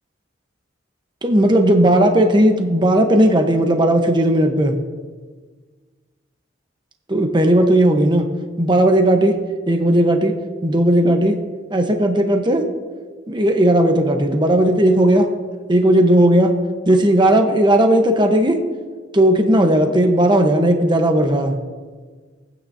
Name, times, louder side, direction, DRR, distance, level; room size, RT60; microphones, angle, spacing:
voice 1, 1.2-4.8 7.1-8.3 8.6-9.4 9.7-11.4 11.7-12.7 13.3-15.3 15.7-16.6 16.9-18.6 19.1-21.6, right 1 dB, 25° right, 4 dB, 1.1 m, -15 dB
20.0 x 9.0 x 2.8 m, 1.5 s
head